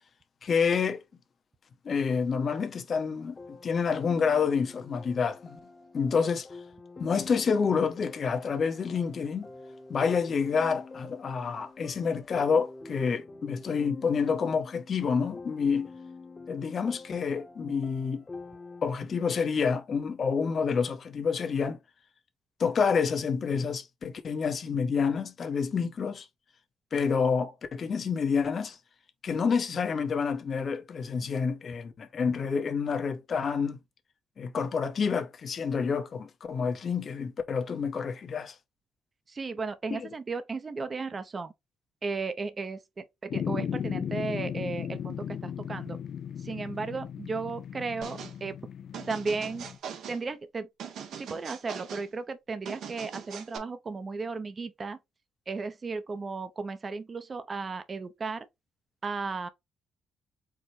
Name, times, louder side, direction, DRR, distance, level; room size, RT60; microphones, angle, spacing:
voice 1, 0.4-1.0 1.8-5.6 5.9-6.5 7.0-9.5 9.9-15.9 16.5-18.2 18.8-21.8 22.6-26.3 26.9-28.8 29.2-33.8 34.4-38.5, left 5 dB, 50° left, 0.9 m, -28 dB
sound 1, 3.3-18.8, left 3 dB, 30° left, 1.0 m, -47 dB
voice 2, 39.3-41.5 42.0-46.0 46.4-48.6 49.1-49.7 50.1-50.7 51.1-55.0 55.5-58.5 59.0-59.5, right 4 dB, 35° right, 0.6 m, -35 dB
sound 2, 43.3-49.8, left 8 dB, 65° left, 0.4 m, -36 dB
sound 3, 48.0-48.4 48.9-50.2 50.8-52.1 52.7-53.6, right 7 dB, 75° right, 0.8 m, -41 dB
4.7 x 2.1 x 4.2 m
cardioid pair, 90°, 0 cm